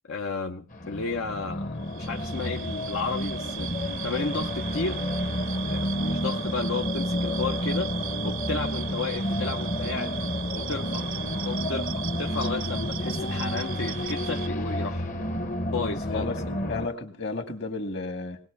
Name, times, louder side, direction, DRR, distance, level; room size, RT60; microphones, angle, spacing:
voice 1, 0.1-5.0 5.7-7.9 8.2-10.1 10.5-11.1 11.4-15.1 15.7-16.5, left 4 dB, 75° left, 3 dB, 0.9 m, -33 dB
sound 1, 0.7-16.9, left 1 dB, 40° left, 1.0 m, -30 dB
sound 2, 1.8-14.5, right 12 dB, 75° right, 0.7 m, -38 dB
voice 2, 16.1-18.4, left 3 dB, 55° left, 6 dB, 2.0 m, -33 dB
20.0 x 19.5 x 3.4 m, 0.38 s
head